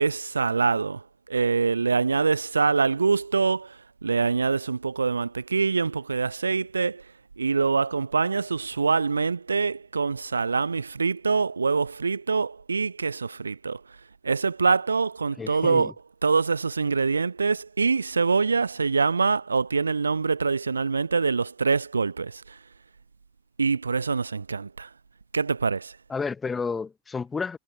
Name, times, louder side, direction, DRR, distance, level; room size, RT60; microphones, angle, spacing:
voice 1, 0.0-7.1 7.4-13.8 14.2-15.9 16.2-22.6 23.6-24.9 25.3-26.0, right 4 dB, 75° right, 0.7 m, -25 dB
voice 2, 15.4-15.9 26.1-27.6, left 5 dB, 15° left, 0.6 m, -31 dB
figure-of-eight pair, 90°, 0 cm